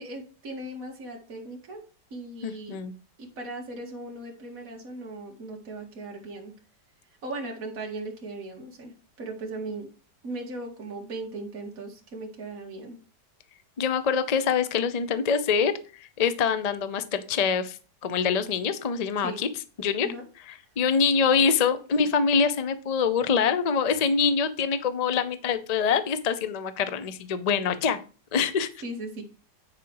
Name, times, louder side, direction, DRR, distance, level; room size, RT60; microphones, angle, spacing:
voice 1, 0.0-1.8 2.1-2.8 3.2-6.5 7.2-9.9 10.2-13.0 19.2-19.4 20.0-20.2 23.9-24.0 28.8-29.2, right 2 dB, 50° right, 0 dB, 2.4 m, -38 dB
voice 2, 2.4-2.9 13.8-19.5 19.8-20.1 20.5-28.0 28.3-28.7, left 6 dB, 80° left, 12 dB, 0.3 m, -25 dB
9.9 x 4.9 x 4.8 m, 0.36 s
omnidirectional pair, 1.9 m